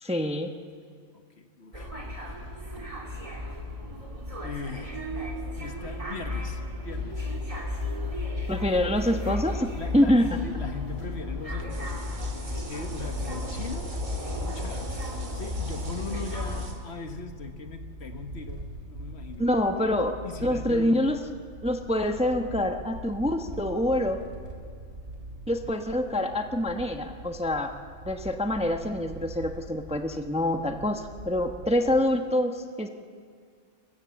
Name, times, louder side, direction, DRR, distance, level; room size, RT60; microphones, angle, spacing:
voice 1, 0.0-0.5 8.5-10.3 19.4-21.2 21.6-24.2 25.5-27.7 28.0-32.9, left 1 dB, 5° right, 5 dB, 0.9 m, -26 dB
voice 2, 1.1-2.0 2.3-2.4 4.2-5.1 5.5-7.3 9.8-19.5 19.8-19.9 20.2-21.0, left 4 dB, 60° left, 6 dB, 1.5 m, -40 dB
sound 1, 1.7-16.6, left 2 dB, 25° right, 2.7 m, -34 dB
sound 2, 11.7-16.7, right 3 dB, 85° right, 2.7 m, -46 dB
sound 3, 13.0-32.0, right 1 dB, 65° right, 2.8 m, -43 dB
27.0 x 15.0 x 7.5 m, 2.1 s
omnidirectional pair, 1.3 m